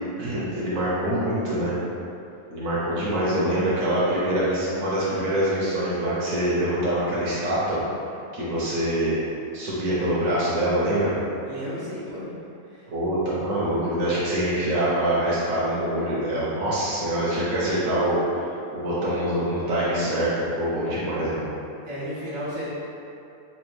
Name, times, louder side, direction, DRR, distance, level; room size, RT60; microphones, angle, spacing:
voice 1, 0.2-1.8 2.5-7.8 8.3-9.2 9.5-11.1 12.9-21.5, right 1 dB, 90° right, -8 dB, 1.3 m, -25 dB
voice 2, 11.5-12.4 12.7-12.9 21.8-22.7, equal, 60° right, -10 dB, 1.4 m, -33 dB
4.1 x 2.7 x 3.1 m, 2.7 s
omnidirectional pair, 1.4 m